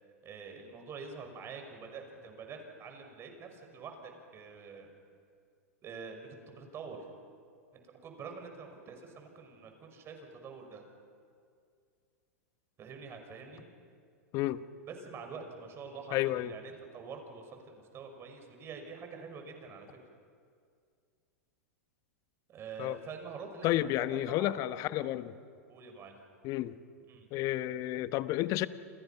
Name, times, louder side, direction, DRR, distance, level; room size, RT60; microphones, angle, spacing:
voice 1, 0.2-4.9 5.8-7.1 7.8-10.8 12.8-13.6 14.9-19.9 22.5-24.6 24.9-25.2 25.7-26.2 27.1-27.3, right 5 dB, 30° right, 4 dB, 6.0 m, -46 dB
voice 2, 16.1-16.5 22.8-23.0 23.6-25.3 26.4-26.8 27.3-28.7, left 15 dB, 45° left, 13 dB, 1.1 m, -31 dB
30.0 x 27.5 x 5.9 m, 2.2 s
hypercardioid pair, 105°, 8 cm